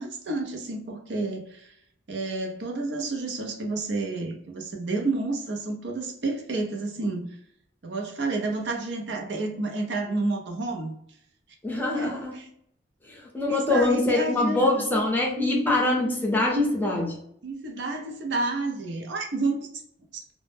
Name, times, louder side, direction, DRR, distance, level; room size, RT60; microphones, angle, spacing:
voice 1, 0.0-1.7 2.1-7.4 7.8-10.9 11.9-12.5 13.5-14.8 17.4-19.7, right 3 dB, 65° right, 2 dB, 0.5 m, -30 dB
voice 2, 11.6-12.3 13.0-17.2, left 2 dB, 10° left, -2 dB, 0.5 m, -24 dB
2.1 x 2.0 x 3.2 m, 0.70 s
head